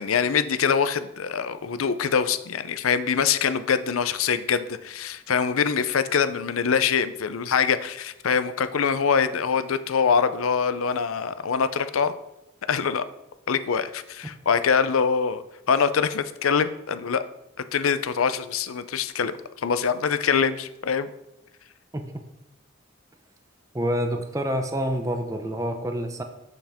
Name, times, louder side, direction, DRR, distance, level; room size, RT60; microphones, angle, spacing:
voice 1, 0.0-12.1 12.7-13.1 13.5-17.2 17.7-21.1, left 6 dB, 85° left, 12 dB, 0.5 m, -24 dB
voice 2, 23.7-26.2, equal, 15° right, 5 dB, 0.6 m, -27 dB
7.9 x 7.2 x 3.5 m, 0.90 s
head